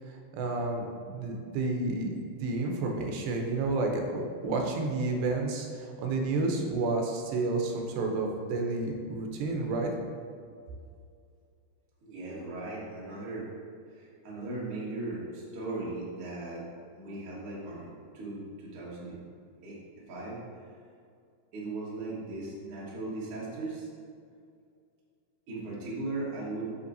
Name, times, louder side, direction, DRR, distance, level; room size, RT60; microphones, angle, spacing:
voice 1, 0.3-9.9, right 3 dB, 85° right, 2 dB, 3.0 m, -30 dB
voice 2, 12.0-13.5 13.9-16.7 16.9-19.2 19.6-19.8 20.1-20.4 21.5-23.9 25.5-26.7, right 2 dB, 50° right, -6 dB, 1.7 m, -38 dB
8.4 x 6.0 x 2.7 m, 2.3 s
omnidirectional pair, 4.7 m